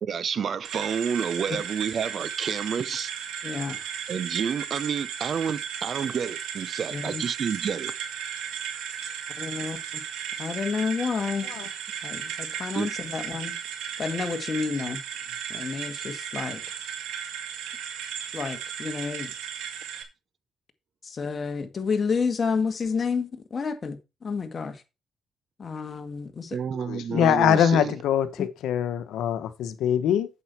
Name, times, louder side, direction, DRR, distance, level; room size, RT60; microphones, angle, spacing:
voice 1, 0.0-3.1 4.1-7.9 12.7-12.9 26.5-27.9, right 7 dB, 55° right, 0.8 m, -29 dB
sound 1, 0.6-20.0, right 8 dB, 90° right, 1.9 m, -35 dB
voice 2, 3.4-3.8 6.9-7.2 9.4-9.8 10.4-11.5 12.0-13.5 14.0-15.0 15.5-16.6 18.3-19.3 21.0-24.8 25.6-26.6 28.4-28.5, left 5 dB, 40° left, 1.9 m, -30 dB
voice 3, 26.8-30.3, left 9 dB, 80° left, 1.2 m, -23 dB
8.4 x 7.0 x 4.6 m
cardioid pair, 90°, 0 cm